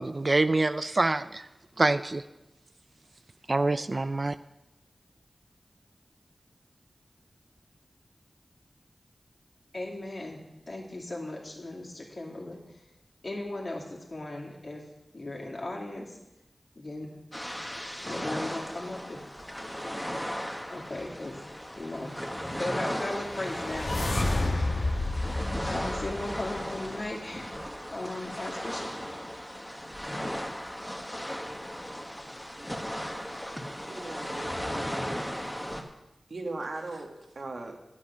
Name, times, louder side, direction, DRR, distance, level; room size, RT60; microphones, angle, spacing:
voice 1, 0.0-1.5 1.8-2.2 3.5-4.4, right 2 dB, 45° right, 12 dB, 0.4 m, -26 dB
voice 2, 9.7-12.6 13.2-14.8 15.1-16.1 16.8-17.1 18.0-19.3 20.7-21.4 21.8-22.2 22.6-23.9 25.5-27.6 27.9-28.9, left 2 dB, 55° left, -1 dB, 2.5 m, -37 dB
sound 1, 17.3-35.8, equal, 10° left, 1.4 m, -36 dB
sound 2, 22.9-27.0, left 2 dB, 70° left, 1.2 m, -31 dB
voice 3, 33.8-35.8 36.3-37.8, right 2 dB, 75° right, 2 dB, 1.6 m, -40 dB
10.5 x 8.6 x 6.1 m, 0.94 s
wide cardioid pair, 65°, 0 cm